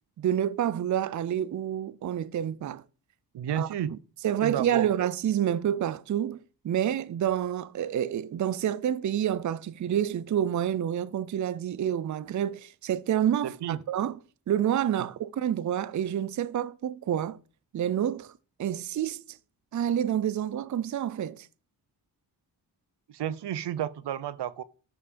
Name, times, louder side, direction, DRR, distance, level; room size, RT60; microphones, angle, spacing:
voice 1, 0.2-2.8 3.5-3.7 4.2-6.4 6.6-14.2 14.5-17.4 17.7-18.3 18.6-19.4 19.7-21.5, right 10 dB, 50° right, 0.5 m, -28 dB
voice 2, 3.3-3.9 4.4-4.9 13.4-13.8 15.0-15.1 23.1-24.6, right 10 dB, 90° right, 0.7 m, -32 dB
13.0 x 5.5 x 5.2 m
wide cardioid pair, 125°, 40 cm